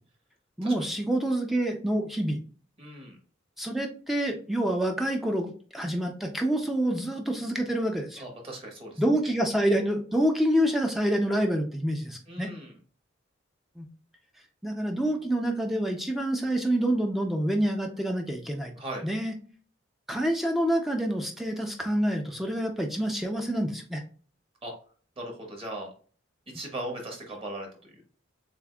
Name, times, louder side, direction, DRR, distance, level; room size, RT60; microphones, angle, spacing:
voice 1, 0.6-2.4 3.6-8.2 9.0-12.5 13.8-13.9 14.6-18.7 19.0-19.3 20.1-24.0, right 1 dB, ahead, 2 dB, 0.4 m, -27 dB
voice 2, 2.8-3.2 8.2-9.3 12.3-12.7 18.8-19.0 24.6-24.7 25.2-25.9 26.5-27.9, right 1 dB, 30° right, 1 dB, 1.2 m, -38 dB
7.0 x 2.5 x 2.3 m, 0.41 s
head